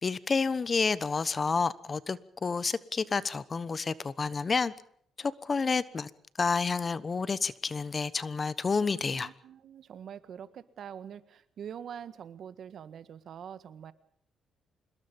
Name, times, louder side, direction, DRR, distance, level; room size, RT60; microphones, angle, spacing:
voice 1, 0.0-4.7 5.2-6.1 6.4-9.3, left 4 dB, 35° left, 17 dB, 1.1 m, -29 dB
voice 2, 8.9-13.9, right 8 dB, 65° right, 13 dB, 1.6 m, -44 dB
26.0 x 21.0 x 5.4 m, 0.64 s
cardioid pair, 90°, 0 cm